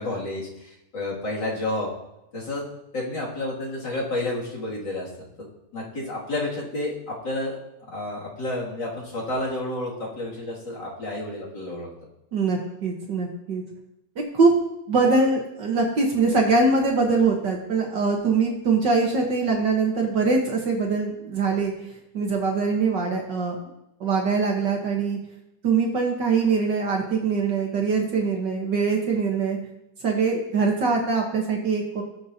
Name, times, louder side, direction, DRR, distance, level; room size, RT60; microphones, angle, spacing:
voice 1, 0.0-1.9 2.3-2.7 2.9-5.1 5.7-7.6 7.9-11.9, left 1 dB, 35° left, -5 dB, 2.8 m, -30 dB
voice 2, 12.3-13.6 14.3-14.5 14.9-21.7 22.1-23.6 24.0-25.2 25.6-29.6 30.0-32.0, right 4 dB, 60° right, 1 dB, 1.1 m, -23 dB
18.5 x 6.6 x 2.8 m, 0.88 s
omnidirectional pair, 3.6 m